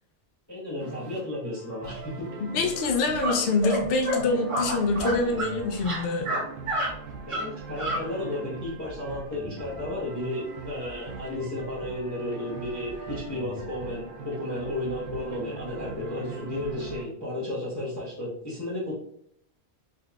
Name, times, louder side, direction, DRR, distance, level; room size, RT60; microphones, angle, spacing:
voice 1, 0.5-2.3 7.3-18.9, left 1 dB, 15° left, -9 dB, 0.8 m, -33 dB
sound 1, 0.8-17.0, right 4 dB, 60° right, 0.6 m, -40 dB
voice 2, 2.4-6.3, left 3 dB, 65° left, 2 dB, 0.7 m, -25 dB
sound 2, 3.2-3.3 3.6-4.2 4.5-5.5 5.8-6.4 6.7-6.9 7.3-7.4 7.8-8.0, right 1 dB, 30° right, 0.8 m, -28 dB
3.8 x 2.7 x 2.2 m, 0.69 s
omnidirectional pair, 1.2 m